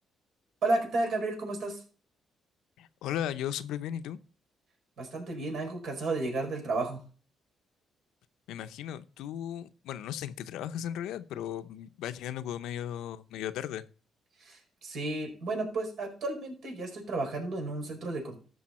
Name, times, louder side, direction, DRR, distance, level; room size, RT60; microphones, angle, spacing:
voice 1, 0.6-1.8 5.0-7.0 14.4-18.4, right 2 dB, 70° right, 4.6 m, -32 dB
voice 2, 2.8-4.2 8.5-13.8, left 10 dB, 90° left, 0.6 m, -36 dB
14.0 x 5.5 x 4.2 m
cardioid pair, 90°, 0 cm